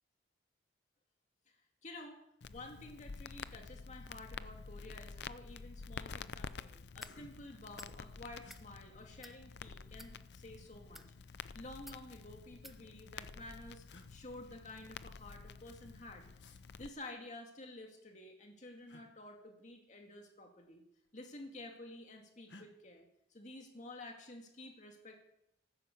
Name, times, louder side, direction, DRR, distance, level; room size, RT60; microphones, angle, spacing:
voice 1, 1.5-2.2 2.5-13.8 14.1-16.2 16.8-20.8 21.1-25.1, left 2 dB, 45° left, 2 dB, 2.2 m, -51 dB
Crackle, 2.4-16.9, left 5 dB, 70° left, 0.6 m, -49 dB
sound 1, 4.7-4.9 5.3-5.8 6.3-6.4 6.7-7.6 8.4-8.6 9.8-10.5 11.6-12.5 13.4-13.5 13.9-14.1 16.4-16.6 18.9-19.1 20.4-20.7 21.0-21.6 22.5-22.7, left 2 dB, 85° left, 1.6 m, -60 dB
sound 2, 7.0-7.2 7.8-8.0 8.4-8.6 9.2-9.4 9.9-10.1 10.8-11.1 11.9-12.0 12.6-12.8, equal, ahead, 0.6 m, -54 dB
14.5 x 11.5 x 7.0 m, 0.80 s
head